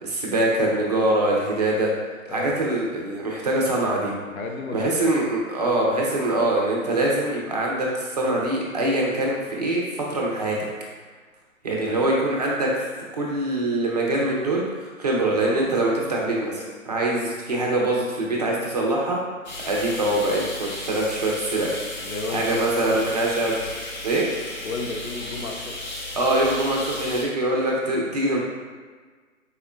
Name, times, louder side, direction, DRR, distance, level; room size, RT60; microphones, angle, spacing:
voice 1, 0.0-1.9 2.3-4.1 4.7-10.6 11.6-12.8 13.1-19.2 19.6-21.7 22.3-23.6 24.0-24.3 26.1-28.4, right 1 dB, 30° right, -2 dB, 0.4 m, -23 dB
voice 2, 4.3-5.1 11.7-12.1 22.0-23.2 24.6-25.7, left 3 dB, 80° left, 2 dB, 0.6 m, -33 dB
sound 1, 19.4-27.2, left 1 dB, 35° left, 0.5 m, -35 dB
4.2 x 2.1 x 2.5 m, 1.5 s
figure-of-eight pair, 135°, 41 cm